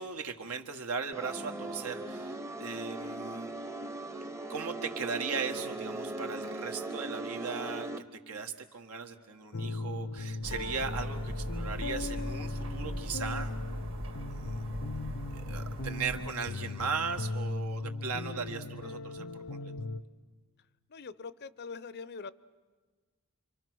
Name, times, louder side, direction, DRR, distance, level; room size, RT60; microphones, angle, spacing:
voice 1, 0.0-3.5 4.5-13.5 14.3-14.6 15.3-19.7, right 5 dB, 85° right, 5 dB, 1.6 m, -38 dB
sound 1, 1.1-8.0, right 2 dB, 15° right, 0.8 m, -39 dB
sound 2, 9.5-20.0, left 2 dB, 85° left, 0.8 m, -38 dB
sound 3, 10.4-16.3, right 1 dB, 60° right, 2.2 m, -40 dB
voice 2, 20.9-22.3, left 4 dB, 50° left, 17 dB, 0.6 m, -43 dB
28.5 x 24.5 x 6.2 m, 1.4 s
head